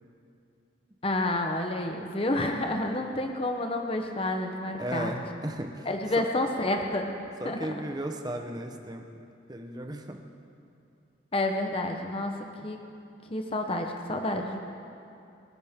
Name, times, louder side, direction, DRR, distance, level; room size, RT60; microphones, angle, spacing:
voice 1, 1.0-5.1 5.9-7.1 7.4-7.8 11.3-12.3 12.6-12.8 13.3-14.6, left 1 dB, 30° left, 3 dB, 0.9 m, -29 dB
voice 2, 4.8-5.9 6.2-6.3 7.4-9.1 9.5-10.2, right 1 dB, 20° right, 4 dB, 0.9 m, -35 dB
28.5 x 10.5 x 3.7 m, 2.6 s
head